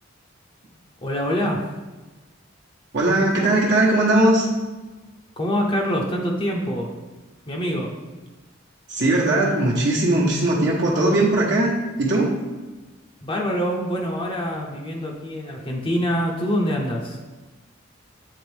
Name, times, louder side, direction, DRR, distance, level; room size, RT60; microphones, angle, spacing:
voice 1, 1.0-1.6 5.4-6.9 7.5-7.9 13.2-17.2, equal, 25° left, -1 dB, 0.8 m, -25 dB
voice 2, 2.9-4.5 8.9-11.7 12.0-12.3, right 1 dB, 60° right, -4 dB, 1.1 m, -19 dB
8.5 x 3.6 x 3.4 m, 1.2 s
head